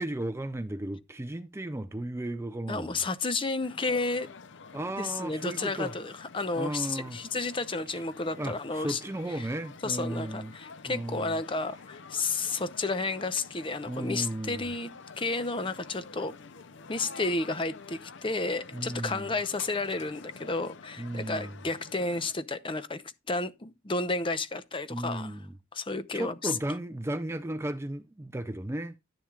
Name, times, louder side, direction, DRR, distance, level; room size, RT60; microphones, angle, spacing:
voice 1, 0.0-3.0 4.7-5.9 6.6-7.2 7.9-8.0 8.4-10.5 10.9-11.4 13.8-14.7 18.7-19.3 21.0-21.6 24.9-25.6 26.1-28.9, right 1 dB, 15° right, 0.4 m, -35 dB
voice 2, 2.7-4.3 5.0-9.0 9.4-9.5 9.8-14.9 15.2-16.3 16.9-23.0 23.3-25.3 25.7-26.6, left 3 dB, 25° left, 0.7 m, -32 dB
sound 1, 3.6-22.3, left 4 dB, 60° left, 0.6 m, -48 dB
11.0 x 10.5 x 2.4 m
head